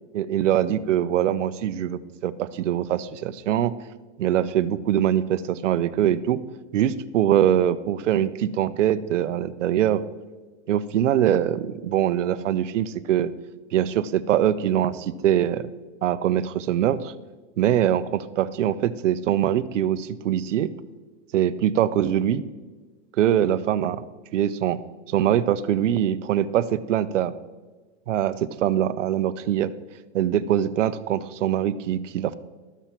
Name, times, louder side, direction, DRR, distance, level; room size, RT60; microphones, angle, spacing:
voice 1, 0.1-3.7 4.2-6.4 6.7-10.0 10.7-13.3 13.7-15.6 16.0-17.1 17.6-20.7 21.3-22.4 23.2-24.0 24.3-24.8 25.1-27.3 28.1-29.7 30.1-32.4, right 11 dB, 85° right, 15 dB, 0.7 m, -23 dB
13.0 x 7.0 x 4.4 m, 1.3 s
supercardioid pair, 150°, 36 cm